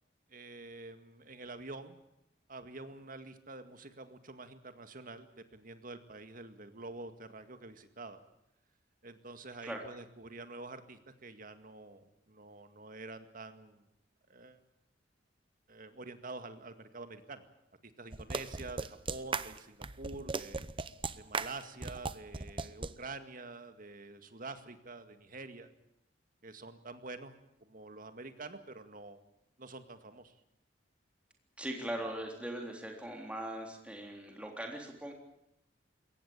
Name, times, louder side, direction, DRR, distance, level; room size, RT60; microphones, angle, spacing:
voice 1, 0.3-2.0 2.5-8.2 9.0-13.8 14.3-14.6 15.7-17.4 17.8-20.6 21.2-25.7 26.4-27.3 27.6-29.2 29.6-30.3, right 3 dB, 50° right, 9 dB, 2.1 m, -47 dB
sound 1, 18.1-22.9, right 4 dB, 30° right, 0.8 m, -37 dB
voice 2, 31.6-35.1, right 1 dB, 5° right, 1 dB, 3.6 m, -40 dB
22.0 x 18.5 x 8.8 m, 0.82 s
head